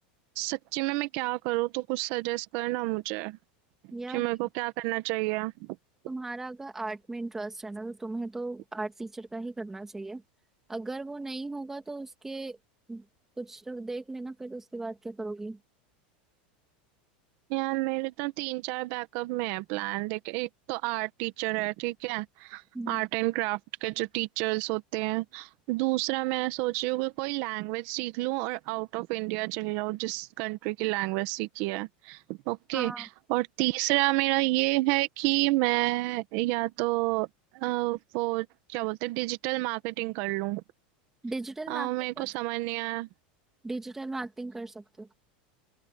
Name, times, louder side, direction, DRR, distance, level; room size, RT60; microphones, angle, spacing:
voice 1, 0.4-3.4 4.1-5.8 17.5-37.3 37.5-40.6 41.7-43.1, right 21 dB, 50° right, 1.8 m, -30 dB
voice 2, 3.9-4.3 6.1-10.2 10.7-12.6 12.9-13.0 13.4-15.6 22.7-23.0 32.7-33.0 41.2-41.9 42.2-42.3 43.6-45.1, right 2 dB, 5° right, 2.4 m, -37 dB
open air
supercardioid pair, 155°, 5 cm